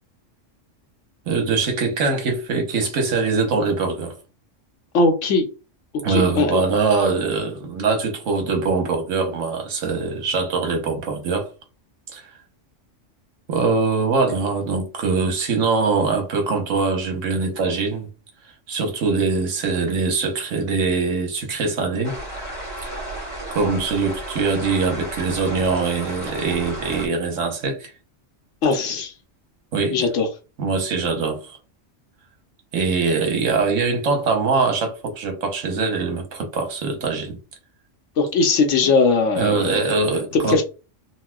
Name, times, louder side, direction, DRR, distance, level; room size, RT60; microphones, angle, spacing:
voice 1, 1.3-4.1 6.0-11.5 12.1-12.2 13.5-18.1 18.7-22.1 22.8-22.9 23.5-27.9 29.7-30.0 30.6-31.6 32.7-37.4 39.4-40.6, right 4 dB, 80° right, 1.2 m, -22 dB
voice 2, 4.9-5.4 6.1-6.6 28.6-29.1 29.9-30.3 38.2-40.6, left 3 dB, 80° left, 1.1 m, -20 dB
sound 1, 22.0-27.1, right 1 dB, 25° right, 1.5 m, -33 dB
4.1 x 2.2 x 2.2 m
omnidirectional pair, 1.3 m